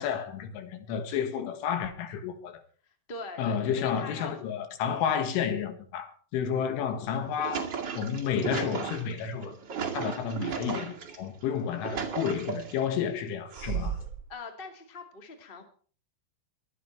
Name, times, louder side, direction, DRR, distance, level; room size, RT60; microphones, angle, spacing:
voice 1, 0.0-2.6 3.4-7.7 8.0-9.6 9.9-14.0, left 7 dB, 80° left, 4.1 m, -31 dB
voice 2, 2.8-4.3 14.3-15.6, left 3 dB, 30° left, 0.9 m, -42 dB
sound 1, 7.1-11.2 11.6-12.9 13.5-14.2, right 7 dB, 40° right, 1.7 m, -35 dB
23.0 x 9.6 x 4.5 m
omnidirectional pair, 5.5 m